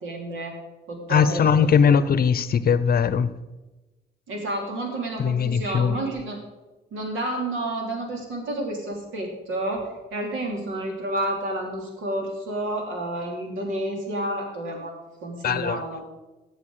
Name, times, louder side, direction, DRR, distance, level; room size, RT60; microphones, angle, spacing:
voice 1, 0.0-0.6 0.9-1.7 4.3-6.4 6.9-14.9 15.2-16.1, right 1 dB, 80° right, 1 dB, 3.1 m, -30 dB
voice 2, 1.1-3.3 5.2-6.0 15.4-15.8, left 7 dB, 50° left, 14 dB, 0.7 m, -20 dB
14.5 x 7.9 x 4.9 m, 1.1 s
cardioid pair, 90°, 20 cm